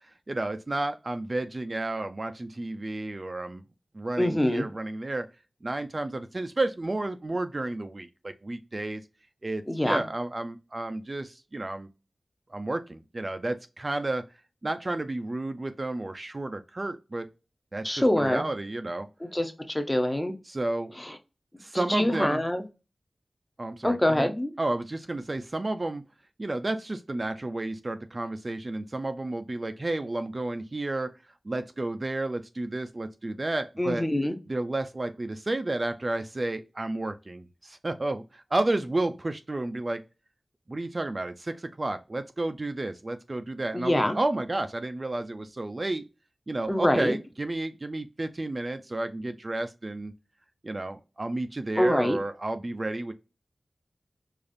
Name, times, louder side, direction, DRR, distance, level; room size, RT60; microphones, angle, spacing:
voice 1, 0.3-3.6 3.9-5.3 5.6-9.0 9.4-11.9 12.5-14.2 14.6-17.3 17.7-19.1 20.5-20.9 21.6-22.4 23.6-24.3 24.6-26.0 26.4-31.1 31.4-34.1 34.5-40.0 40.7-46.0 46.5-50.1 50.6-53.1, right 2 dB, 35° right, 9 dB, 0.3 m, -31 dB
voice 2, 4.2-4.6 9.7-10.0 17.8-18.4 19.2-20.4 21.0-21.2 21.7-22.6 23.8-24.5 33.8-34.4 43.7-44.2 46.7-47.2 51.8-52.2, left 1 dB, 15° left, 7 dB, 0.6 m, -25 dB
4.9 x 2.4 x 2.5 m, 0.29 s
wide cardioid pair, 95°, 0 cm